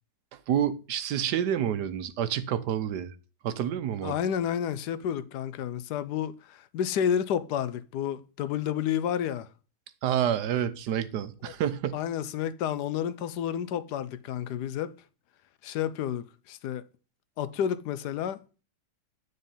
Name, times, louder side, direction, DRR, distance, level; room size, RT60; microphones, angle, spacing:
voice 1, 0.5-3.1 3.4-4.1 10.0-12.0, right 9 dB, 75° right, 1.3 m, -28 dB
voice 2, 4.0-9.5 11.4-11.5 11.9-14.9 15.6-16.8 17.4-18.4, left 9 dB, 75° left, 1.2 m, -30 dB
9.5 x 4.1 x 5.4 m
omnidirectional pair, 1.9 m